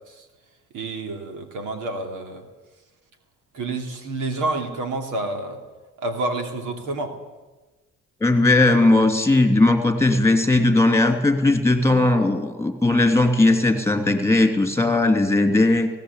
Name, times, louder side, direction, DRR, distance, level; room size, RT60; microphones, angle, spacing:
voice 1, 0.7-2.4 3.5-5.6 6.0-7.2, right 2 dB, 85° right, 5 dB, 3.0 m, -29 dB
voice 2, 8.2-15.9, left 2 dB, 10° left, 6 dB, 2.9 m, -18 dB
18.0 x 17.0 x 8.3 m, 1.2 s
cardioid pair, 90°, 30 cm